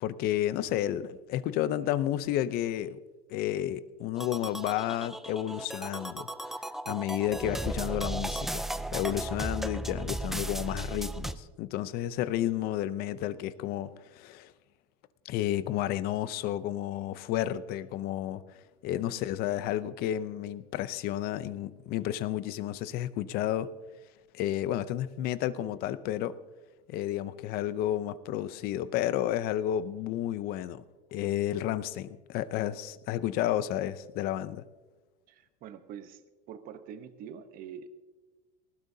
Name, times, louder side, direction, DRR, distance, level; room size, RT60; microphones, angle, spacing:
voice 1, 0.0-3.0 3.3-6.3 6.9-8.6 8.9-14.5 15.2-18.4 18.8-23.7 24.3-26.4 26.9-30.8 31.1-34.6, left 12 dB, 50° left, 15 dB, 0.6 m, -31 dB
sound 1, 4.2-11.3, right 1 dB, ahead, 0.4 m, -35 dB
voice 2, 35.3-36.2 36.5-37.9, right 8 dB, 45° right, 10 dB, 1.0 m, -45 dB
19.0 x 16.0 x 2.8 m, 1.2 s
supercardioid pair, 140°, 20 cm